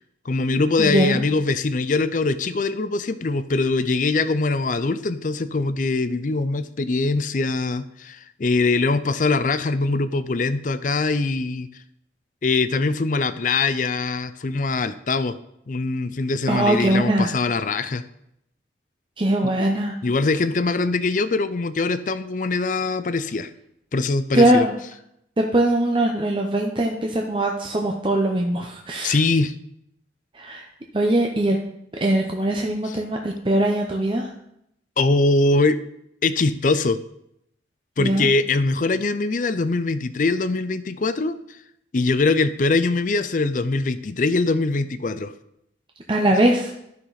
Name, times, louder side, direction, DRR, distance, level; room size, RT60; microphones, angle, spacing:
voice 1, 0.3-11.7 12.4-15.4 15.7-18.0 20.0-23.5 23.9-24.6 29.0-29.5 35.0-35.8 36.2-37.0 38.0-41.4 41.9-45.3, left 3 dB, 45° left, 12 dB, 0.5 m, -22 dB
voice 2, 0.8-1.2 16.5-17.3 19.2-20.0 24.3-24.7 25.4-29.2 30.3-30.7 30.9-31.6 32.0-34.3 38.0-38.3 46.1-46.7, right 1 dB, 30° right, 1 dB, 0.7 m, -21 dB
12.5 x 6.0 x 4.0 m, 0.78 s
head